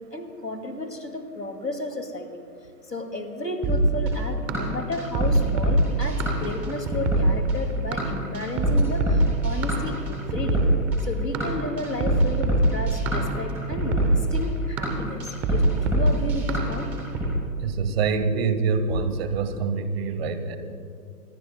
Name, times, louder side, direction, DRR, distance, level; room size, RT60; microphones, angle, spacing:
voice 1, 0.1-2.3 2.9-10.6 11.0-16.9, left 2 dB, 85° left, 5 dB, 2.5 m, -33 dB
sound 1, 3.6-17.3, right 1 dB, 5° right, 0.5 m, -22 dB
voice 2, 17.6-20.6, right 5 dB, 40° right, 9 dB, 1.6 m, -25 dB
25.0 x 20.5 x 2.3 m, 2.4 s
figure-of-eight pair, 125°, 48 cm